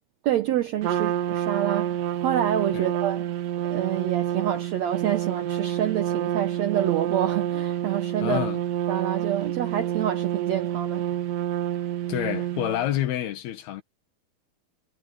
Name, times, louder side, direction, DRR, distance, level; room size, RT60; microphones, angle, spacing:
voice 1, 0.2-3.3 3.6-8.5 8.9-11.0, right 11 dB, 85° right, 1.5 m, -27 dB
Trumpet, 0.8-12.9, right 11 dB, 60° right, 1.9 m, -28 dB
voice 2, 8.2-8.6 12.1-13.8, left 12 dB, 85° left, 3.5 m, -28 dB
omnidirectional pair, 4.4 m